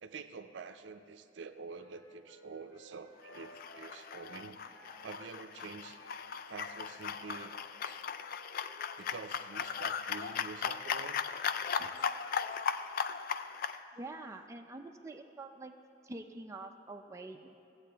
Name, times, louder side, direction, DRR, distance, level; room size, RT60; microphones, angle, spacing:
voice 1, 0.0-4.6 5.0-6.0 6.5-8.0 9.0-11.2 11.8-12.1, right 5 dB, 70° right, 9 dB, 0.5 m, -47 dB
Wind instrument woodwind instrument, 1.7-9.3, equal, 90° left, 1.1 m, -57 dB
sound 1, 3.3-13.8, left 7 dB, 50° left, 0.3 m, -37 dB
voice 2, 13.9-15.7 16.0-17.6, right 2 dB, 15° right, 3 dB, 0.4 m, -46 dB
15.0 x 8.1 x 3.4 m, 3.0 s
head